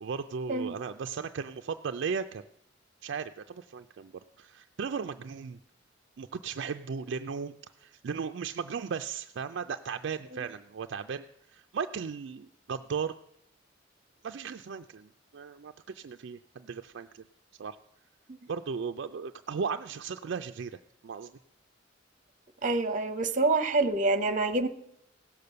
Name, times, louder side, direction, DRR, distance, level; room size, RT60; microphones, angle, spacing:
voice 1, 0.0-2.4 3.0-4.1 4.4-5.6 6.2-13.1 14.2-17.3 17.6-17.8 18.5-20.8 21.0-21.3, right 6 dB, 65° right, 7 dB, 0.4 m, -36 dB
voice 2, 22.6-24.7, right 3 dB, 40° right, 10 dB, 0.9 m, -27 dB
16.0 x 6.8 x 6.7 m, 0.79 s
head